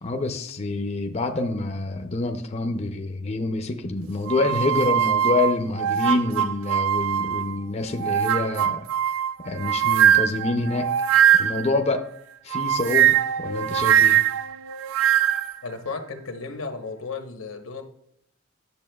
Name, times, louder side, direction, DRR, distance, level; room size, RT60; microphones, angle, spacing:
voice 1, 0.0-8.8 9.4-10.9 11.4-12.0 12.4-14.2, left 2 dB, 30° left, 5 dB, 0.5 m, -26 dB
sound 1, 4.3-7.5 8.0-11.7 12.5-15.6, right 10 dB, 80° right, 0.4 m, -21 dB
voice 2, 15.6-17.8, left 4 dB, 90° left, 5 dB, 1.0 m, -34 dB
10.5 x 6.8 x 2.3 m, 0.69 s
head